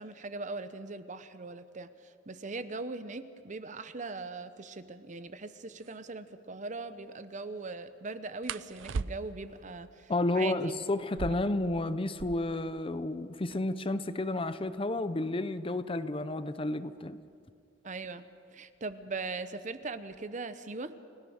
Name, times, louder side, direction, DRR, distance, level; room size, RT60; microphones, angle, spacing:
voice 1, 0.0-10.7 11.3-11.4 17.8-18.3 18.5-20.9, right 3 dB, 40° right, 0.9 m, -40 dB
sound 1, 5.3-5.4 5.7-6.0 8.4-9.5 11.0-12.6 13.0-13.1 13.3-13.8 14.5-17.0 18.0-18.3 18.7-19.2 19.6-20.3, right 4 dB, 85° right, 0.5 m, -41 dB
voice 2, 10.1-17.2, left 2 dB, 30° left, 0.7 m, -31 dB
29.5 x 16.5 x 6.4 m
head